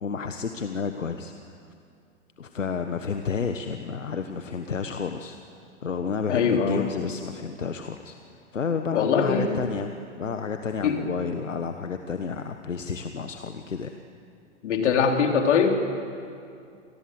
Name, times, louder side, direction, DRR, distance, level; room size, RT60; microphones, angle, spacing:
voice 1, 0.0-1.6 2.4-5.4 5.8-8.1 8.5-14.0, left 5 dB, 90° left, 7 dB, 1.3 m, -31 dB
voice 2, 6.3-6.9 8.9-9.6 10.8-11.0 14.6-15.7, left 6 dB, 70° left, 3 dB, 3.7 m, -22 dB
28.0 x 19.5 x 7.9 m, 2.4 s
hypercardioid pair, 105°, 37 cm